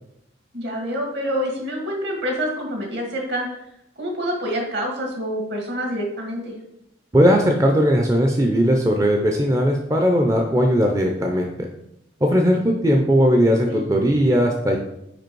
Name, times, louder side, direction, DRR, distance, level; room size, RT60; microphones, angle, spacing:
voice 1, 0.5-3.5 4.0-6.5 13.7-13.8, equal, 60° right, 1 dB, 1.7 m, -27 dB
voice 2, 7.1-11.7 12.2-14.8, equal, 15° right, 2 dB, 0.5 m, -18 dB
5.1 x 4.8 x 4.5 m, 0.80 s
head